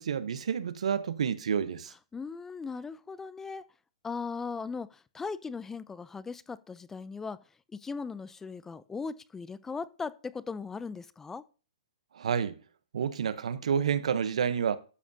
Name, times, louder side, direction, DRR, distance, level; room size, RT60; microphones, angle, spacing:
voice 1, 0.0-1.9 12.1-12.6 12.9-14.8, right 7 dB, 75° right, 0.8 m, -29 dB
voice 2, 2.1-3.6 4.0-7.4 7.7-11.4, left 5 dB, 10° left, 0.4 m, -38 dB
12.5 x 7.5 x 2.7 m
hypercardioid pair, 130°, 3 cm